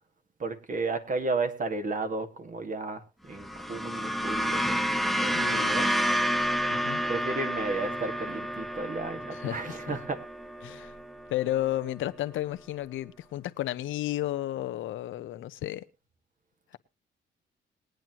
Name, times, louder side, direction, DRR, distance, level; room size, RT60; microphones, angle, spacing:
voice 1, 0.4-5.9 7.1-10.2, right 3 dB, 40° right, 1.9 m, -33 dB
sound 1, 3.3-11.8, equal, ahead, 0.7 m, -30 dB
voice 2, 5.3-5.7 6.7-7.0 9.3-9.9 10.6-10.9 11.3-15.9, left 14 dB, 80° left, 0.8 m, -33 dB
21.5 x 9.2 x 2.9 m
cardioid pair, 90°, 20 cm